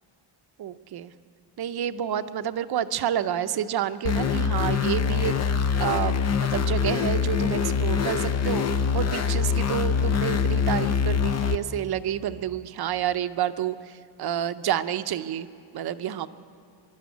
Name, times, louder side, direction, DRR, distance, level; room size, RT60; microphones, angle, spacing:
voice 1, 0.6-1.1 1.6-15.5 15.7-16.3, right 10 dB, 50° right, 11 dB, 0.7 m, -29 dB
sound 1, 4.0-11.6, left 6 dB, 35° left, 0.6 m, -24 dB
26.0 x 12.0 x 8.3 m, 2.3 s
cardioid pair, 165°, 49 cm